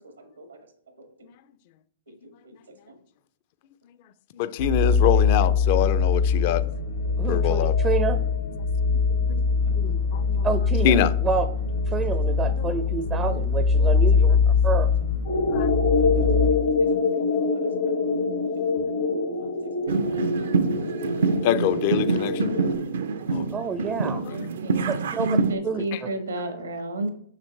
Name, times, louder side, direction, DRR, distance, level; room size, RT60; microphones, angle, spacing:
voice 1, 4.3-6.6 7.3-7.8 9.1-9.4 9.7-10.5 10.8-11.1 12.6-12.7 13.8-13.9 15.5-15.8 18.8-18.9 21.4-22.5 23.3-23.6 24.2-24.4 25.8-26.0, left 10 dB, 50° left, 0.4 m, -25 dB
sound 1, 4.6-16.5, left 5 dB, 90° left, 1.6 m, -22 dB
voice 2, 7.2-8.2 10.4-11.5 11.9-14.9 23.5-24.2 24.9-25.4 25.6-26.1, right 6 dB, 20° right, 0.4 m, -28 dB
sound 2, 15.3-22.8, left 3 dB, 70° left, 1.3 m, -25 dB
sound 3, 19.9-25.6, right 4 dB, 70° right, 0.5 m, -26 dB
voice 3, 24.4-27.1, right 2 dB, 90° right, 1.4 m, -32 dB
6.6 x 6.3 x 3.1 m
hypercardioid pair, 115°, 0 cm